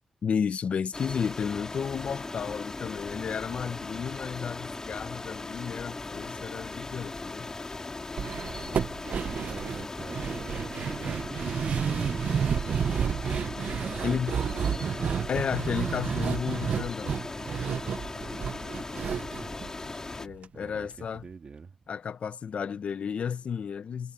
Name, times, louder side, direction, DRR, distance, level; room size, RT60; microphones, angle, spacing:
voice 1, 0.2-7.5 14.0-14.4 15.3-17.2 17.6-17.8 20.2-21.3 21.9-24.1, left 7 dB, 65° left, 0.7 m, -32 dB
sound 1, 0.9-20.3, left 3 dB, 25° left, 3.4 m, -38 dB
sound 2, 8.2-20.5 20.7-20.8 21.2-21.3, right 7 dB, 70° right, 0.6 m, -31 dB
voice 2, 9.0-15.0 19.0-19.7 20.5-21.8, right 5 dB, 50° right, 2.1 m, -44 dB
wide cardioid pair, 115°, 2 cm